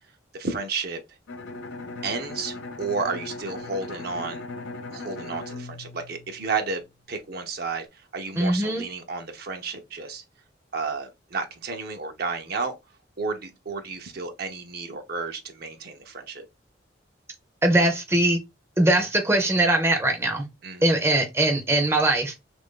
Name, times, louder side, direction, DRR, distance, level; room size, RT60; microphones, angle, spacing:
voice 1, 0.3-1.0 2.0-4.4 4.9-6.8 7.1-10.2 10.7-12.7 13.2-16.5 20.6-21.0, right 4 dB, 55° right, 0.6 m, -32 dB
Bowed string instrument, 1.3-6.9, left 3 dB, 75° left, 0.5 m, -38 dB
voice 2, 8.4-8.8 17.6-18.4 18.8-20.5 20.8-22.3, right 1 dB, 15° right, 0.6 m, -21 dB
3.0 x 2.5 x 3.6 m
head